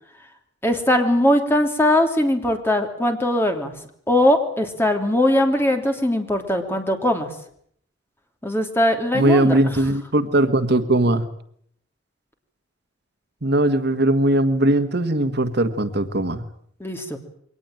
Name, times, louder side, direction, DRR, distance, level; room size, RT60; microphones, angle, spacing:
voice 1, 0.6-3.7 4.1-7.3 8.4-9.6 16.8-17.2, left 1 dB, 10° left, 5 dB, 3.1 m, -20 dB
voice 2, 9.1-11.2 13.4-16.4, right 1 dB, 60° right, 9 dB, 1.6 m, -19 dB
23.0 x 19.0 x 9.0 m, 0.66 s
head